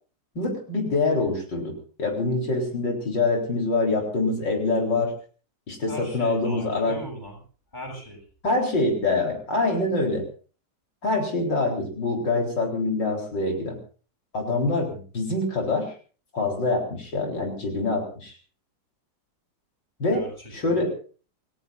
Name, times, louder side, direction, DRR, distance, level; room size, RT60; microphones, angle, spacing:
voice 1, 0.3-5.1 5.7-7.0 8.4-10.2 11.0-13.8 14.3-15.9 16.3-18.3 20.0-20.2 20.5-20.9, left 3 dB, 75° left, 1 dB, 4.7 m, -25 dB
voice 2, 5.9-7.4 7.7-8.2 20.1-20.8, left 1 dB, 25° left, 0 dB, 7.8 m, -39 dB
28.5 x 17.5 x 2.6 m, 0.39 s
omnidirectional pair, 2.0 m